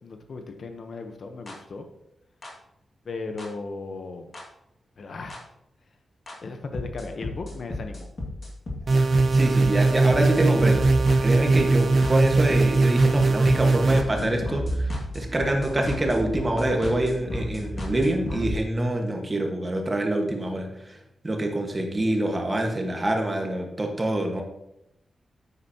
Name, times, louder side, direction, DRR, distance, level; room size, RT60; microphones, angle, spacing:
voice 1, 0.0-1.9 3.0-4.3 5.0-5.4 6.4-8.1, left 3 dB, 60° left, 6 dB, 1.0 m, -36 dB
sound 1, 1.5-1.6 2.4-2.5 3.4-3.5 4.3-4.4 5.3-5.4 6.3-6.4 6.7-18.5, left 1 dB, 40° left, 2.1 m, -33 dB
sound 2, 8.9-14.0, right 3 dB, 50° right, 0.6 m, -20 dB
voice 2, 9.3-10.9 11.2-20.7 21.2-24.4, right 1 dB, 25° right, 2 dB, 1.5 m, -25 dB
9.6 x 8.2 x 2.9 m, 0.83 s
wide cardioid pair, 120°, 0 cm